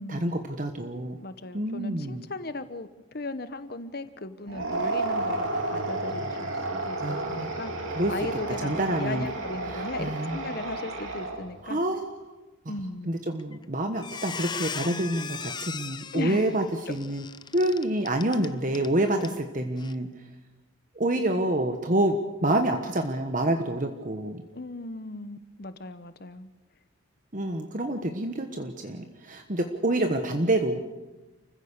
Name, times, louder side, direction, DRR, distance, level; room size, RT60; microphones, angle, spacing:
voice 1, 0.1-1.2 1.5-2.3 7.0-7.5 7.9-8.1 8.6-9.3 9.7-10.4 11.6-12.4 13.1-17.2 17.5-20.1 20.9-24.4 27.3-30.8, right 1 dB, 40° right, 5 dB, 1.2 m, -27 dB
voice 2, 1.2-2.9 3.1-11.8 12.7-13.1 16.1-16.6 19.0-19.4 24.5-26.5, left 2 dB, 50° left, 12 dB, 1.1 m, -37 dB
sound 1, 4.5-11.6, right 2 dB, 75° right, 3.4 m, -32 dB
Squeak, 13.4-13.6 13.9-18.9 19.2-19.4 19.8-19.9, left 6 dB, 20° left, 0.6 m, -37 dB
28.5 x 15.5 x 6.8 m, 1.1 s
head